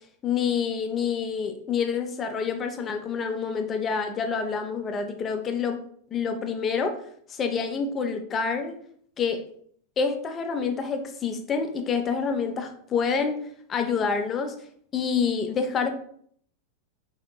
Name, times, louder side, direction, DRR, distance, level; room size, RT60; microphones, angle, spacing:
voice 1, 0.2-5.8 6.1-7.0 7.3-8.7 9.2-9.4 10.0-13.4 13.7-14.5 14.9-15.9, left 6 dB, 25° left, 6 dB, 0.5 m, -27 dB
4.3 x 2.8 x 2.3 m, 0.63 s
figure-of-eight pair, 90°, 0 cm